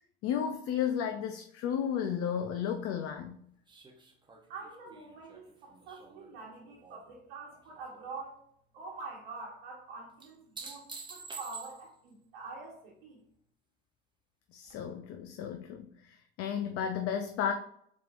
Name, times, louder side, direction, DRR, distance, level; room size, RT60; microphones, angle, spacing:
voice 1, 0.2-3.4 14.5-17.5, left 8 dB, 50° left, 6 dB, 0.5 m, -33 dB
sound 1, 3.7-7.1 7.5-8.1 10.2-12.1 14.7-14.8, right 4 dB, 15° right, 0.8 m, -48 dB
voice 2, 4.5-8.4 8.7-13.2, right 4 dB, 85° right, -5 dB, 1.1 m, -45 dB
4.3 x 3.6 x 2.5 m, 0.67 s
supercardioid pair, 90°, 29 cm